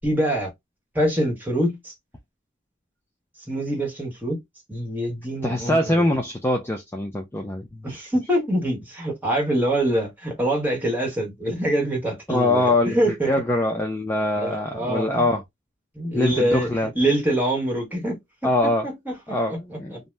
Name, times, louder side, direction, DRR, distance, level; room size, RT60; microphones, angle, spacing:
voice 1, 0.0-0.5 0.9-1.9 3.5-4.4 4.7-6.0 7.8-13.3 14.4-15.3 15.9-16.7 16.9-20.0, right 1 dB, 10° right, 1.2 m, -25 dB
voice 2, 5.4-8.0 12.3-15.4 16.1-16.9 18.4-18.9 19.3-20.0, left 1 dB, 10° left, 0.4 m, -23 dB
2.6 x 2.1 x 3.2 m
head